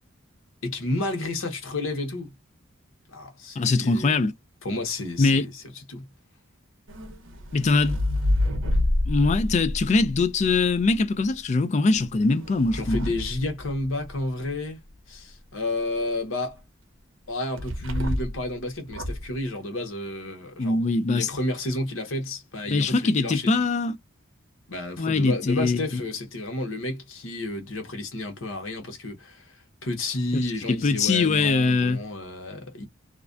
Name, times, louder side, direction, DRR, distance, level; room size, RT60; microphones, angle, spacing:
voice 1, 0.6-2.3 3.1-4.2 4.6-6.1 12.7-14.8 15.1-16.6 17.3-20.8 21.1-23.5 24.7-32.9, left 2 dB, 75° left, 0.9 m, -31 dB
voice 2, 3.6-4.3 5.2-5.5 7.5-8.0 9.1-13.1 20.6-21.3 22.7-24.0 25.0-25.8 30.3-32.0, left 3 dB, 35° left, 0.3 m, -22 dB
sound 1, 6.9-11.0 11.9-14.3 17.6-18.5 18.9-19.3, left 1 dB, 65° right, 0.7 m, -28 dB
2.4 x 2.1 x 2.4 m
head